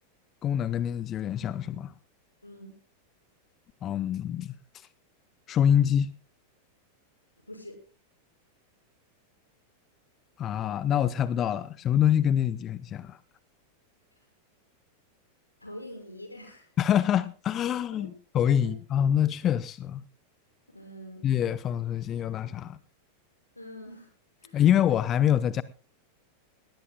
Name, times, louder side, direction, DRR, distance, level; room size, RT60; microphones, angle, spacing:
voice 1, 0.4-1.9 3.8-4.5 5.5-6.1 10.4-13.2 16.8-20.0 21.2-22.8 24.5-25.6, left 10 dB, 30° left, 0.6 m, -25 dB
voice 2, 2.4-2.8 7.5-7.8 15.6-16.7 18.0-18.1 18.6-18.7 20.7-21.3 23.6-24.1 24.4-24.6, equal, 85° left, 5.9 m, -44 dB
19.5 x 18.0 x 2.2 m
figure-of-eight pair, 90°, 0 cm